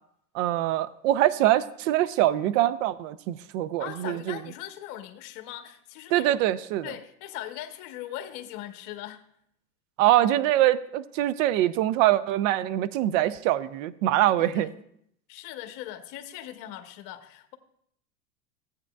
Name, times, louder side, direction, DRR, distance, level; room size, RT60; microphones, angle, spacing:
voice 1, 0.3-4.4 6.1-6.9 10.0-14.7, right 14 dB, 60° right, 0.6 m, -24 dB
voice 2, 3.8-6.4 6.8-9.2 14.3-14.7 15.3-17.6, left 12 dB, 55° left, 1.0 m, -40 dB
14.5 x 8.5 x 2.3 m
supercardioid pair, 120°, 44 cm